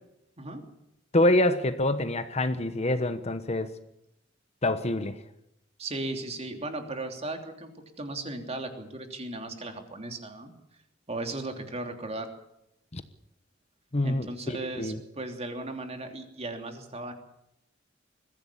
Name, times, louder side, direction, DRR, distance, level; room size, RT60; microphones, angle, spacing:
voice 1, 1.1-3.7 4.6-5.2 12.9-13.0 13.9-15.0, left 1 dB, 35° left, 11 dB, 1.1 m, -26 dB
voice 2, 5.8-10.5 11.1-12.3 14.0-17.1, right 2 dB, 35° right, 5 dB, 3.1 m, -36 dB
22.0 x 15.0 x 8.5 m, 0.84 s
head